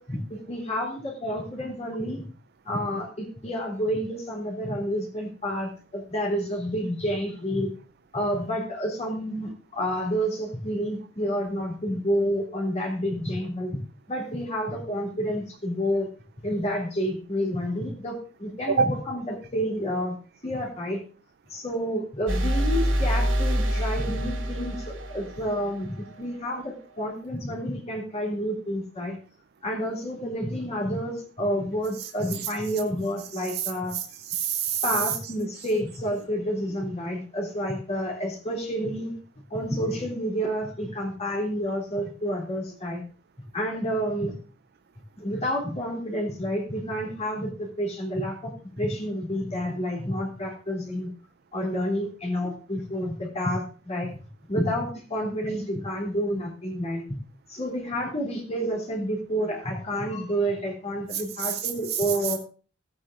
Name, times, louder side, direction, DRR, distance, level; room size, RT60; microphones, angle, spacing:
voice 1, 0.0-2.2 2.7-7.7 8.1-13.7 14.1-16.1 16.4-20.2 20.4-21.0 21.5-29.2 29.6-34.0 34.8-39.1 39.5-43.0 43.5-44.3 45.2-51.1 51.5-54.1 54.5-57.0 57.5-62.4, equal, 35° left, -1 dB, 3.5 m, -29 dB
sound 1, 22.3-26.0, equal, 75° right, 2.6 m, -26 dB
voice 2, 32.0-32.5 33.3-35.2 61.1-62.4, right 7 dB, 55° right, 12 dB, 0.5 m, -29 dB
15.5 x 8.8 x 3.8 m, 0.39 s
head